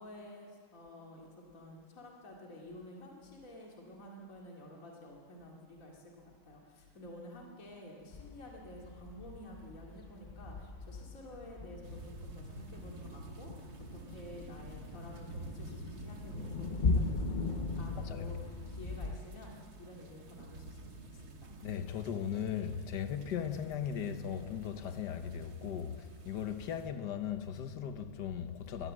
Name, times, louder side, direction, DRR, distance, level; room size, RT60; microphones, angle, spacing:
voice 1, 0.0-21.5, left 1 dB, 50° left, 2.8 m, -51 dB
sound 1, 8.1-19.2, left 3 dB, 35° left, 0.8 m, -39 dB
sound 2, 11.8-26.9, right 2 dB, 65° right, 2.1 m, -49 dB
voice 2, 18.0-18.3 21.6-28.9, left 8 dB, 85° left, 1.6 m, -38 dB
23.5 x 19.0 x 7.4 m
omnidirectional pair, 1.8 m